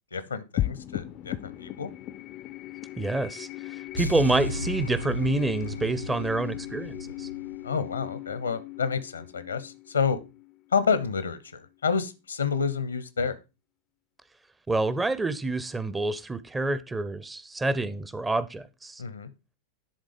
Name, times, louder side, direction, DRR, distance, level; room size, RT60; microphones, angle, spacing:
voice 1, 0.1-1.9 7.6-10.2 10.7-13.4 19.0-19.3, left 6 dB, 75° left, 0.8 m, -29 dB
sound 1, 0.6-11.2, left 15 dB, 35° left, 0.4 m, -38 dB
voice 2, 3.0-7.3 14.7-19.0, right 2 dB, 10° right, 0.6 m, -28 dB
sound 2, 4.0-8.0, equal, 90° right, 0.3 m, -34 dB
10.5 x 3.8 x 5.0 m
figure-of-eight pair, 90°, 0 cm